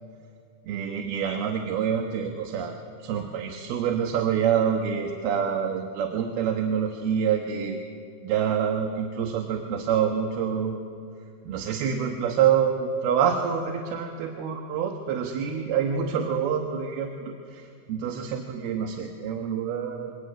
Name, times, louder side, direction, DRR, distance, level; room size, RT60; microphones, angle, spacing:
voice 1, 0.6-7.8 8.2-10.8 11.4-20.2, right 7 dB, 75° right, 3 dB, 3.3 m, -27 dB
25.5 x 23.5 x 9.0 m, 2.4 s
omnidirectional pair, 4.7 m